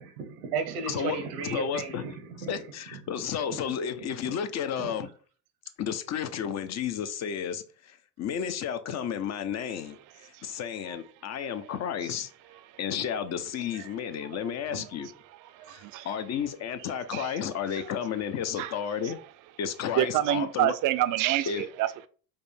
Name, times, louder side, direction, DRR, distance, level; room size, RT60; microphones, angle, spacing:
voice 1, 0.0-2.6 2.9-3.0 4.0-4.3 4.8-4.9, right 5 dB, 80° right, 0.9 m, -35 dB
voice 2, 0.9-2.1 2.5-5.1 5.8-12.3 12.8-15.1 15.7-19.2 19.6-20.7 21.5-21.7, left 8 dB, 40° left, 0.5 m, -32 dB
voice 3, 15.6-16.1 17.1-17.4 18.6-18.7 19.0-19.1 20.0-22.1, right 13 dB, 45° right, 0.4 m, -27 dB
5.1 x 2.1 x 3.2 m
hypercardioid pair, 70°, 45 cm